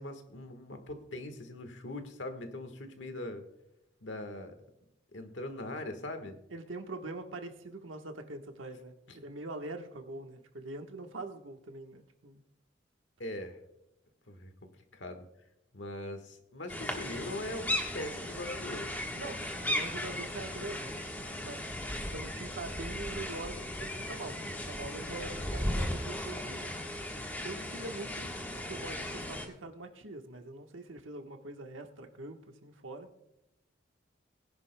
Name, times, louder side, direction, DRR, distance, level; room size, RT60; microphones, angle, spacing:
voice 1, 0.0-3.4 4.0-4.5 5.1-6.4 9.1-9.2 13.2-13.6 14.3-14.5 14.9-15.3 15.7-18.9, left 1 dB, 75° left, 7 dB, 1.4 m, -41 dB
voice 2, 6.5-12.4 19.2-21.0 21.4-21.6 22.1-26.7 27.4-28.3 28.7-33.1, right 2 dB, 90° right, 5 dB, 1.3 m, -43 dB
sound 1, 16.7-29.5, left 1 dB, 10° left, 1.3 m, -37 dB
20.5 x 10.5 x 2.2 m, 0.88 s
head